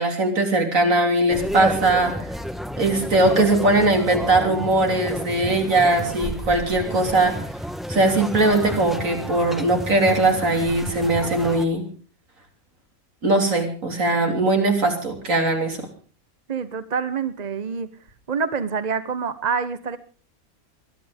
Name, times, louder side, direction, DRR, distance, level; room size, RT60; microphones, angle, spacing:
voice 1, 0.0-2.3 2.8-7.3 7.9-11.9 13.2-15.8, right 2 dB, 65° right, 3 dB, 3.7 m, -20 dB
sound 1, 1.3-11.6, equal, ahead, 1.1 m, -31 dB
voice 2, 16.5-17.9 18.3-20.0, right 6 dB, 35° right, 13 dB, 0.9 m, -26 dB
21.5 x 12.0 x 5.1 m, 0.39 s
omnidirectional pair, 1.5 m